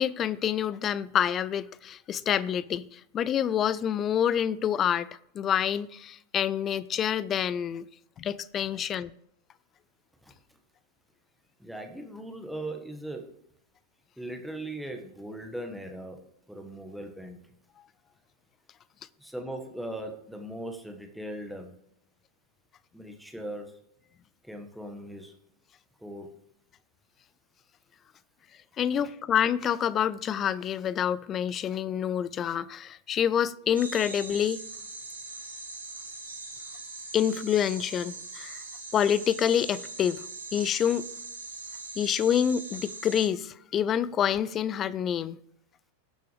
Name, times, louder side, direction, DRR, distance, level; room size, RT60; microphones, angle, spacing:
voice 1, 0.0-5.1 5.3-7.9 8.2-9.1 28.8-34.6 37.1-38.6 38.9-41.1 42.0-45.4, left 9 dB, 30° left, 0.5 m, -27 dB
voice 2, 11.6-13.3 14.2-16.2 16.5-17.4 19.2-21.7 22.9-23.7 24.4-25.3 26.0-26.3 28.9-29.0, right 1 dB, ahead, 1.6 m, -39 dB
sound 1, 33.7-43.3, right 3 dB, 75° right, 1.7 m, -41 dB
19.0 x 6.7 x 3.4 m
figure-of-eight pair, 90°, 0 cm